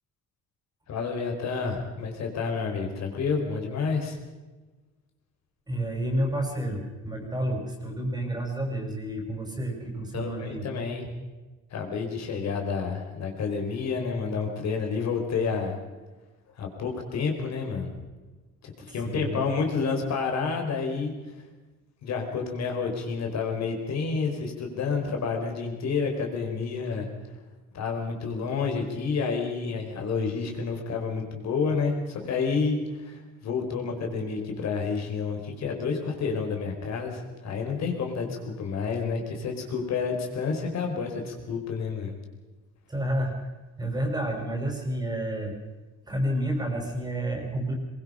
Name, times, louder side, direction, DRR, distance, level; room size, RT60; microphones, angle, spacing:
voice 1, 0.9-4.2 10.1-11.1 11.7-15.8 16.6-17.9 18.6-21.1 22.0-27.1 27.7-42.1, left 5 dB, 55° left, 2 dB, 4.7 m, -29 dB
voice 2, 5.7-10.7 18.8-19.4 42.9-43.4 43.8-45.6 46.1-47.7, right 1 dB, 15° right, 2 dB, 5.3 m, -30 dB
22.5 x 22.5 x 5.7 m, 1.2 s
cardioid pair, 145°, 31 cm